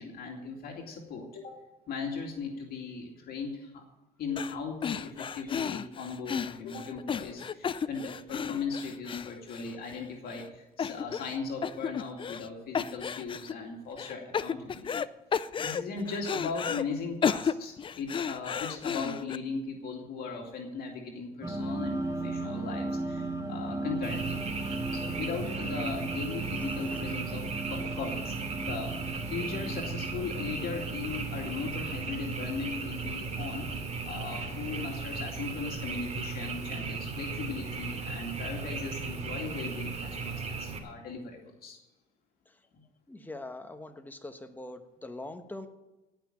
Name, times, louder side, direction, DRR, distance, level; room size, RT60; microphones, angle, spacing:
voice 1, 0.0-1.6 1.9-3.8 4.2-15.0 15.6-24.4 24.9-28.3 28.7-28.9 29.3-33.7 34.0-41.8 42.7-42.8, left 5 dB, 65° left, 1 dB, 2.4 m, -38 dB
sound 1, 4.4-4.6 4.8-10.0 10.3-10.4 10.8-11.4 11.6-12.5 12.7-13.5 14.0-15.1 15.3-16.8 17.2-19.4, left 7 dB, 30° left, 0.5 m, -33 dB
sound 2, 21.4-35.4, right 2 dB, 20° right, 1.6 m, -37 dB
Frog, 24.0-40.8, right 4 dB, 40° right, 2.8 m, -36 dB
voice 2, 26.6-27.0 42.5-42.6 43.1-45.7, left 2 dB, 10° left, 7 dB, 1.2 m, -43 dB
17.5 x 6.0 x 8.9 m, 1.0 s
cardioid pair, 110°, 17 cm